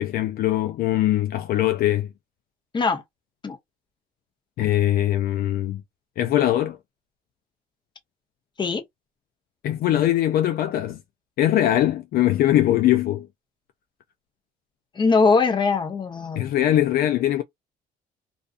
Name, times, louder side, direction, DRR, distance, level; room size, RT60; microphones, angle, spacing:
voice 1, 0.0-2.1 4.6-5.8 6.2-6.8 9.6-11.0 11.4-13.3 16.4-17.4, left 13 dB, 65° left, 0.4 m, -21 dB
voice 2, 14.9-16.5, left 4 dB, 25° left, 0.8 m, -21 dB
2.5 x 2.4 x 2.4 m
cardioid pair, 110°, 17 cm